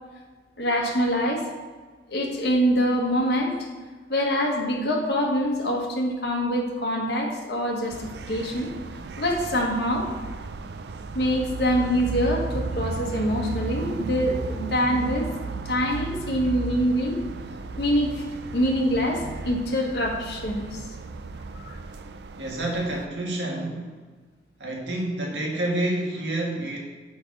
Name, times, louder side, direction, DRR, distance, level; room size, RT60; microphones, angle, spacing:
voice 1, 0.6-1.4 2.1-3.5 4.1-8.7 9.2-10.1 11.1-15.3 15.6-17.2 17.8-18.2 18.5-20.8 21.7-21.8, equal, 70° left, -1 dB, 1.5 m, -25 dB
sound 1, 7.9-23.1, right 4 dB, 70° right, 0.4 m, -35 dB
voice 2, 22.4-23.9 24.6-26.8, right 1 dB, 90° right, -2 dB, 1.9 m, -28 dB
6.1 x 5.5 x 6.1 m, 1.4 s
head